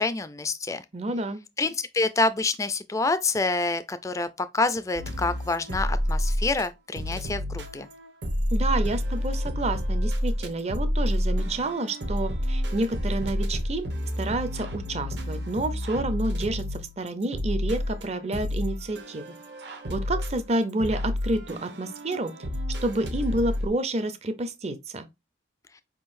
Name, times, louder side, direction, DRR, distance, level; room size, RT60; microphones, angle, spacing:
voice 1, 0.0-0.8 1.6-7.9, left 3 dB, 15° left, 0.3 m, -27 dB
voice 2, 0.9-1.4 8.5-13.9 14.2-19.3 19.9-22.3 22.8-25.1, right 2 dB, 35° right, 0.5 m, -29 dB
sound 1, 5.0-6.7 7.0-23.7, equal, 60° right, 0.8 m, -29 dB
5.0 x 3.7 x 2.6 m
head